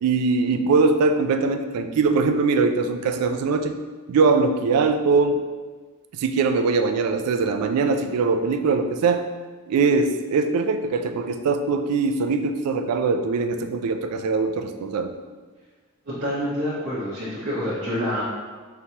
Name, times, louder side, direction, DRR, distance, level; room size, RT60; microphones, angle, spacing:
voice 1, 0.0-3.8 4.1-5.4 6.1-9.3 9.7-15.1, right 4 dB, 85° right, 7 dB, 0.3 m, -22 dB
voice 2, 16.1-18.2, equal, 65° right, -10 dB, 1.1 m, -27 dB
4.5 x 3.2 x 2.8 m, 1.4 s
head